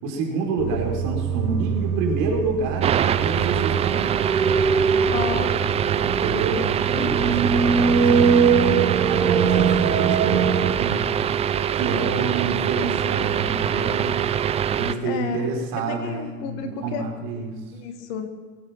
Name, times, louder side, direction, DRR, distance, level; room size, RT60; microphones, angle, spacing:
voice 1, 0.0-4.1 6.0-6.7 7.0-11.1 11.7-14.3 14.7-17.6, right 3 dB, 45° right, 1 dB, 4.5 m, -28 dB
sound 1, 0.6-10.7, right 6 dB, 75° right, 1.4 m, -22 dB
sound 2, 2.8-14.9, right 8 dB, 15° right, 0.4 m, -24 dB
voice 2, 5.1-5.5 6.9-7.6 15.0-17.0 17.7-18.3, left 7 dB, 50° left, 7 dB, 2.1 m, -32 dB
22.5 x 8.6 x 5.8 m, 1.5 s
hypercardioid pair, 90°, 46 cm